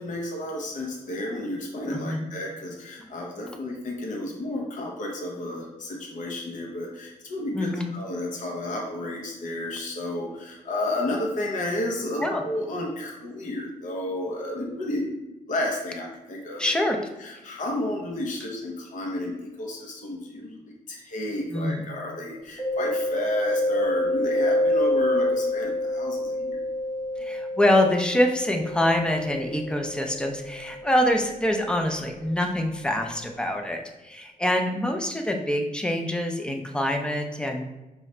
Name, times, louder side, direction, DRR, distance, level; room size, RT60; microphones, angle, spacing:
voice 1, 0.0-15.1 15.5-16.7 17.2-26.6, left 1 dB, 65° left, -1 dB, 0.8 m, -32 dB
voice 2, 7.5-7.9 12.2-12.4 16.6-17.0 21.5-21.8 27.2-37.7, left 1 dB, 5° left, 3 dB, 0.5 m, -25 dB
Mallet percussion, 22.6-32.2, left 1 dB, 30° left, 0.9 m, -28 dB
4.7 x 2.7 x 3.2 m, 1.1 s
wide cardioid pair, 130°, 14 cm